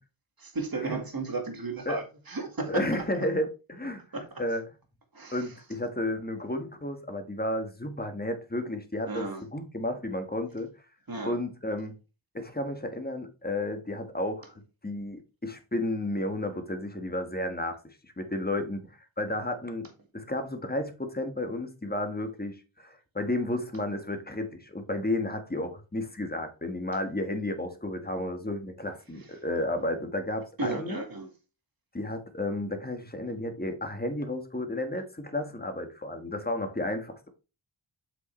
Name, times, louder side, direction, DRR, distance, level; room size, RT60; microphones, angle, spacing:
voice 1, 0.4-2.8 3.1-3.2 4.1-4.4 5.1-5.5 9.1-9.4 11.1-11.4 30.6-31.3, right 3 dB, 45° right, 1.8 m, -34 dB
voice 2, 2.7-4.6 5.3-10.7 11.2-11.9 12.3-14.5 14.8-17.8 18.0-18.9 19.2-31.0 31.9-37.3, left 1 dB, 20° left, 1.5 m, -32 dB
7.8 x 5.8 x 3.2 m
wide cardioid pair, 60°, 49 cm